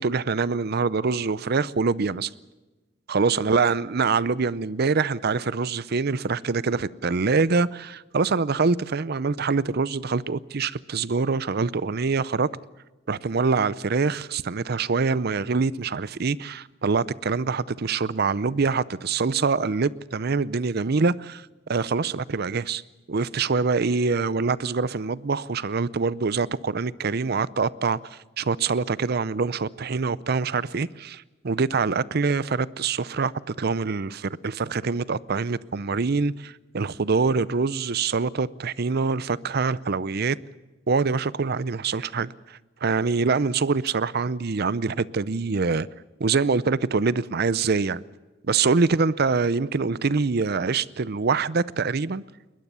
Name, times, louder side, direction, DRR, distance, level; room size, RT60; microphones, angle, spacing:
voice 1, 0.0-2.3 3.1-12.5 13.1-22.8 23.1-28.0 28.4-40.4 40.9-45.9 46.2-48.0 48.5-52.2, right 4 dB, 55° right, 0.6 m, -25 dB
21.5 x 20.5 x 6.9 m
head